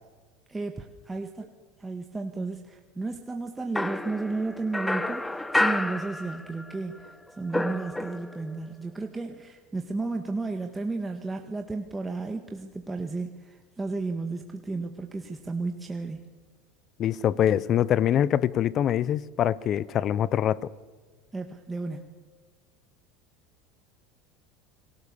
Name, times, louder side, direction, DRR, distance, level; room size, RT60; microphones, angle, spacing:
voice 1, 0.5-1.5 1.8-16.2 21.3-22.1, right 3 dB, 15° right, 1.7 m, -33 dB
sound 1, 3.8-6.8 7.0-8.5, left 1 dB, 5° left, 1.1 m, -30 dB
voice 2, 17.0-20.7, left 10 dB, 45° left, 0.8 m, -24 dB
29.5 x 20.5 x 7.0 m
hypercardioid pair, 85°, 0 cm